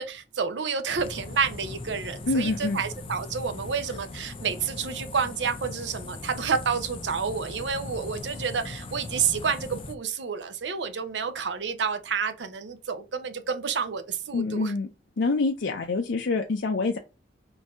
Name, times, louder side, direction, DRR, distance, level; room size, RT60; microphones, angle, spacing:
voice 1, 0.0-14.7, right 6 dB, 75° right, 0.6 m, -29 dB
sound 1, 1.0-9.9, left 2 dB, 30° left, 0.5 m, -39 dB
voice 2, 2.3-2.8 14.3-14.9 15.2-17.0, left 3 dB, 85° left, 0.5 m, -26 dB
3.9 x 2.6 x 4.8 m
head